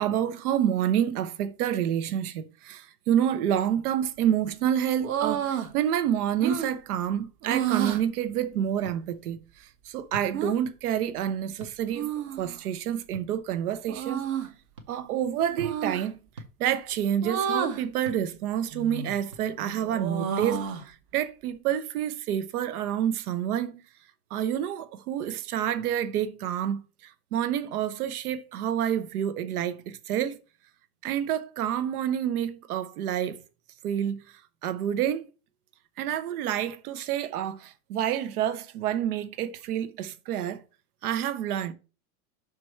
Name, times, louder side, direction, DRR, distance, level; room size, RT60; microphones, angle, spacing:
voice 1, 0.0-12.1 12.4-14.3 14.9-16.2 16.6-23.8 24.3-30.4 31.0-33.4 33.8-34.2 34.6-35.2 36.0-40.6 41.0-41.7, right 10 dB, 85° right, 0.9 m, -28 dB
sound 1, 5.0-5.7 6.4-6.7 7.4-8.0 10.3-10.5 11.9-12.6 13.9-14.5 15.6-16.0 17.2-17.8 18.7-19.2 19.6-20.9, right 8 dB, 65° right, 1.3 m, -30 dB
sound 2, 8.8-9.0 10.1-10.3 11.6-11.8 13.1-13.3 14.8-14.9 16.3-16.5 18.0-18.2 19.3-19.5 20.4-20.5, right 2 dB, 25° right, 0.3 m, -43 dB
6.0 x 4.7 x 4.3 m
supercardioid pair, 180°, 43 cm